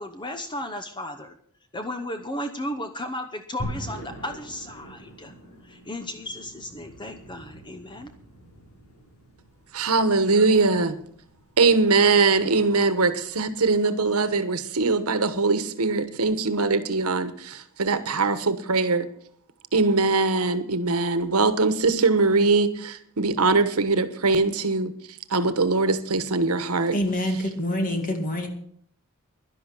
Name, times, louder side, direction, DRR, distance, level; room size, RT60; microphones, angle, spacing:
voice 1, 0.0-1.3 1.7-5.3 5.6-8.1, left 1 dB, 20° left, 7 dB, 0.8 m, -34 dB
sound 1, 3.6-13.8, equal, 70° left, 4.6 m, -43 dB
voice 2, 9.7-11.0 11.6-19.1 19.7-24.9 25.3-27.0, right 3 dB, 80° right, 11 dB, 1.2 m, -22 dB
voice 3, 26.9-28.5, equal, 40° left, 5 dB, 2.2 m, -26 dB
11.5 x 11.0 x 6.1 m, 0.63 s
head